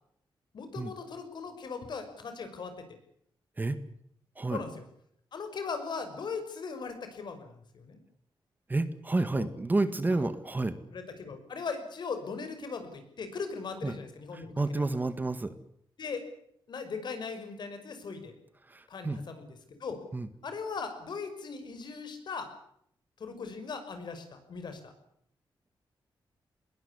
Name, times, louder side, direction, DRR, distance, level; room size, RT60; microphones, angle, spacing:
voice 1, 0.5-2.8 4.5-4.8 5.3-8.0 9.2-9.5 10.1-10.3 10.9-14.9 16.0-16.2 16.7-18.3 18.9-20.0 20.4-22.5 23.2-24.9, left 5 dB, 60° left, 8 dB, 6.0 m, -39 dB
voice 2, 8.7-10.8 13.8-14.0 14.3-15.5 18.7-19.2 20.1-20.3, right 2 dB, 20° right, 12 dB, 1.7 m, -30 dB
21.0 x 19.0 x 9.8 m, 0.70 s
wide cardioid pair, 120°, 9 cm